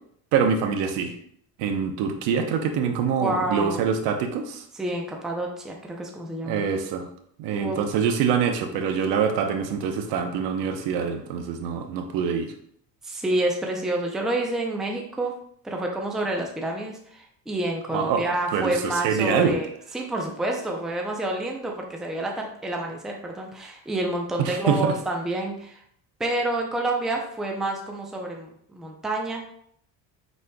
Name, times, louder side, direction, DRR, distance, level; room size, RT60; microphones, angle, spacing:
voice 1, 0.3-1.1 1.6-4.6 6.4-7.1 7.4-12.5 17.9-19.6 24.5-24.9, right 6 dB, 80° right, 5 dB, 0.8 m, -25 dB
voice 2, 3.2-3.8 4.7-6.6 7.5-7.8 13.0-15.3 15.6-25.8 26.2-29.4, right 1 dB, ahead, 1 dB, 0.5 m, -28 dB
4.9 x 4.2 x 2.2 m, 0.66 s
cardioid pair, 125°, 42 cm